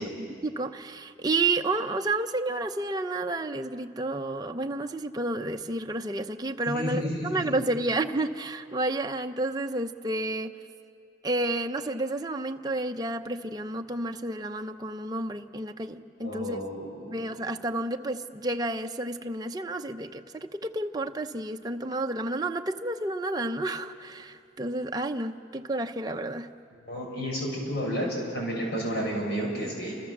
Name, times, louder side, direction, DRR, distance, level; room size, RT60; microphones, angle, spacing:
voice 1, 0.0-10.5 11.2-16.6 17.1-26.5, right 2 dB, 20° right, 5 dB, 0.8 m, -31 dB
voice 2, 6.6-7.6 16.2-17.1 26.8-29.9, equal, 55° left, -1 dB, 7.7 m, -31 dB
29.5 x 26.5 x 7.4 m, 2.7 s
head